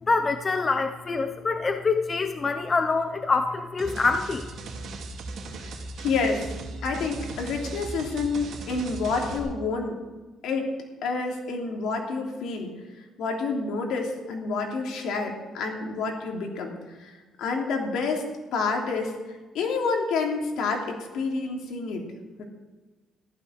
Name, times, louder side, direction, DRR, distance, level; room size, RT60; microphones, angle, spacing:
voice 1, 0.0-4.5, left 4 dB, 25° left, 7 dB, 0.8 m, -25 dB
sound 1, 3.8-9.4, right 3 dB, 60° right, 2.8 m, -37 dB
voice 2, 6.0-6.4 6.8-10.0 10.4-10.8 11.0-12.7 13.2-22.0 22.4-22.5, left 4 dB, 75° left, 1 dB, 3.1 m, -29 dB
14.5 x 12.5 x 6.4 m, 1.3 s
cardioid pair, 155°, 0 cm